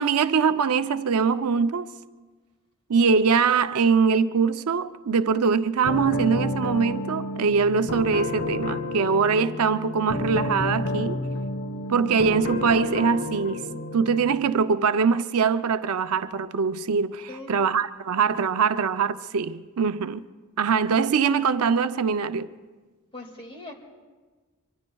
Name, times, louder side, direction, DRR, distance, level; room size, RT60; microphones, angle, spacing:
voice 1, 0.0-1.9 2.9-11.2 11.9-13.6 13.9-20.2 20.6-22.5, right 5 dB, 75° right, 0.5 m, -23 dB
sound 1, 5.8-14.3, left 1 dB, 75° left, 1.2 m, -30 dB
voice 2, 23.1-23.7, left 2 dB, 25° left, 2.2 m, -40 dB
25.0 x 24.5 x 2.3 m
head